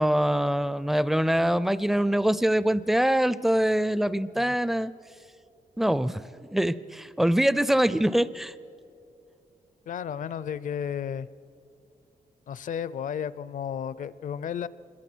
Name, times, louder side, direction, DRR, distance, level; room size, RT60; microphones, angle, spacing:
voice 1, 0.0-4.9 5.8-8.5, right 1 dB, ahead, 16 dB, 0.4 m, -24 dB
voice 2, 9.9-11.3 12.5-14.7, left 8 dB, 65° left, 17 dB, 0.5 m, -33 dB
26.0 x 22.0 x 6.2 m, 2.6 s
wide cardioid pair, 155°, 15 cm